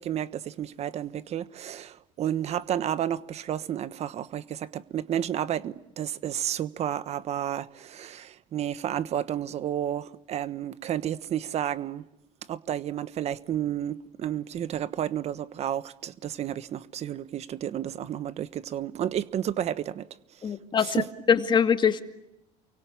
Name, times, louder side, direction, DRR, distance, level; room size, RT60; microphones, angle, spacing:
voice 1, 0.0-12.0 12.5-20.1 20.8-21.1, right 10 dB, 45° right, 1.2 m, -31 dB
voice 2, 20.4-21.0 21.3-22.0, left 7 dB, 30° left, 2.2 m, -22 dB
29.5 x 24.0 x 8.4 m
cardioid pair, 125°, 15 cm